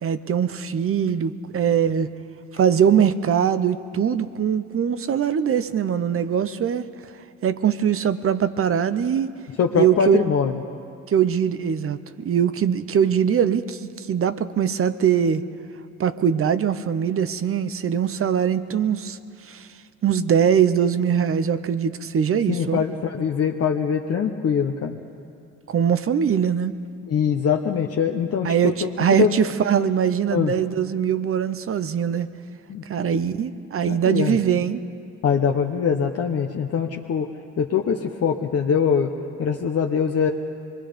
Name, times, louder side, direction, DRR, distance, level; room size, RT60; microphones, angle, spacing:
voice 1, 0.0-2.1 2.5-6.9 7.4-9.3 9.8-10.2 11.1-15.4 16.0-19.2 19.4-19.7 20.0-22.8 25.7-26.8 28.4-32.3 32.9-34.8, right 8 dB, 45° right, 13 dB, 0.8 m, -22 dB
voice 2, 9.6-10.5 22.5-25.0 27.0-29.3 30.3-30.5 32.7-33.3 33.8-34.4 35.2-37.3 37.6-39.1 39.4-40.3, left 7 dB, 55° left, 1 dB, 1.0 m, -23 dB
25.0 x 21.0 x 5.2 m, 2.5 s
cardioid pair, 90°, 30 cm